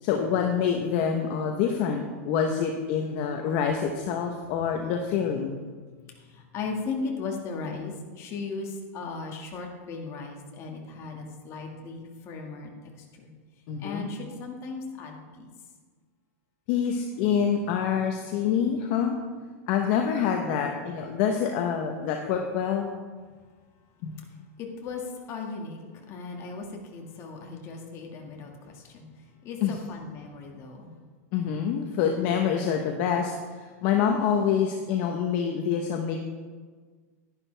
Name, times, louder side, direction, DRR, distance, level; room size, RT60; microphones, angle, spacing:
voice 1, 0.0-5.6 13.7-14.1 16.7-19.2 19.7-22.9 24.0-24.1 29.6-29.8 31.3-36.2, left 7 dB, 50° left, 3 dB, 0.9 m, -26 dB
voice 2, 6.1-12.7 13.0-13.3 13.8-15.5 24.6-30.9, left 4 dB, 35° left, 1 dB, 1.8 m, -37 dB
11.0 x 11.0 x 3.4 m, 1.5 s
supercardioid pair, 145°, 8 cm